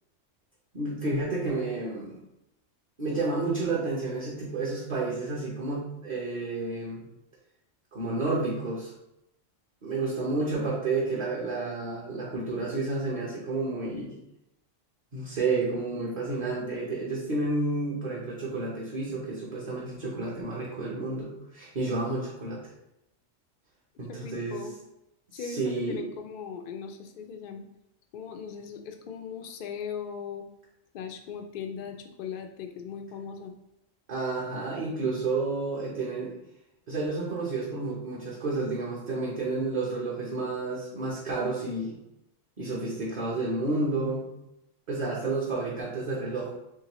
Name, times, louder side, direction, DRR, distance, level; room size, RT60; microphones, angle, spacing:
voice 1, 0.7-2.2 3.0-7.0 7.9-8.9 9.8-14.1 15.1-22.6 24.0-24.6 25.3-26.0 34.1-36.4 36.9-42.0 42.6-44.3 44.9-46.5, right 3 dB, 40° right, -5 dB, 0.8 m, -30 dB
voice 2, 24.1-24.7 25.3-27.6 28.1-30.4 30.9-33.5, left 6 dB, 70° left, 5 dB, 0.5 m, -39 dB
3.7 x 3.2 x 3.0 m, 0.86 s
omnidirectional pair, 1.4 m